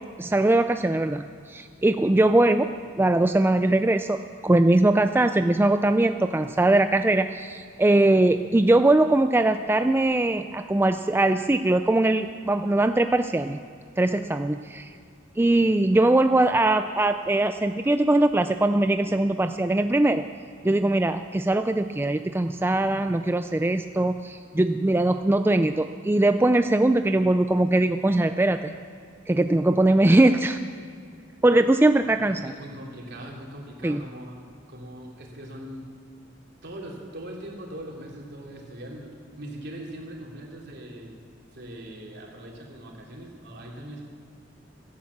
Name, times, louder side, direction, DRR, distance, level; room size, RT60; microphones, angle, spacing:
voice 1, 0.2-2.7 3.0-4.2 4.4-13.6 14.0-14.9 15.4-20.2 20.6-28.7 29.3-30.6 31.4-32.5 33.8-34.0, right 2 dB, 10° right, 8 dB, 0.4 m, -21 dB
voice 2, 32.0-35.9 36.6-41.2 41.5-44.0, right 1 dB, 60° right, -1 dB, 3.3 m, -41 dB
16.5 x 11.5 x 7.2 m, 2.3 s
head